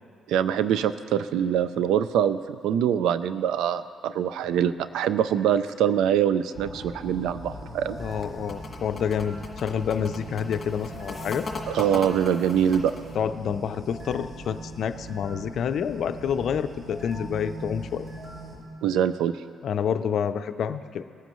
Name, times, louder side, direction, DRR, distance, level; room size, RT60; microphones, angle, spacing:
voice 1, 0.3-8.0 11.7-12.9 18.8-19.4, right 9 dB, 85° right, 14 dB, 0.4 m, -24 dB
sound 1, 6.5-18.6, right 1 dB, 40° right, 2.9 m, -40 dB
voice 2, 8.0-11.5 13.1-18.1 19.6-21.0, left 7 dB, 65° left, 11 dB, 0.5 m, -28 dB
sound 2, 8.0-13.2, left 3 dB, 35° left, 1.7 m, -39 dB
19.0 x 9.4 x 3.1 m, 2.2 s
cardioid pair, 90°, 0 cm